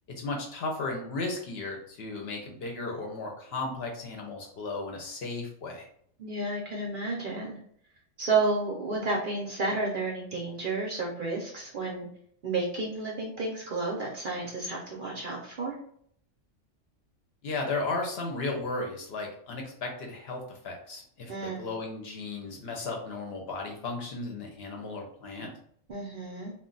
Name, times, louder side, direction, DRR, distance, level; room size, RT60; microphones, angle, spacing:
voice 1, 0.2-5.9 17.4-25.5, left 3 dB, 60° left, 1 dB, 0.8 m, -35 dB
voice 2, 6.2-7.6 8.2-12.1 12.4-15.7 21.3-21.7 25.9-26.5, right 3 dB, 55° right, -2 dB, 0.6 m, -31 dB
2.3 x 2.1 x 3.8 m, 0.64 s
omnidirectional pair, 1.3 m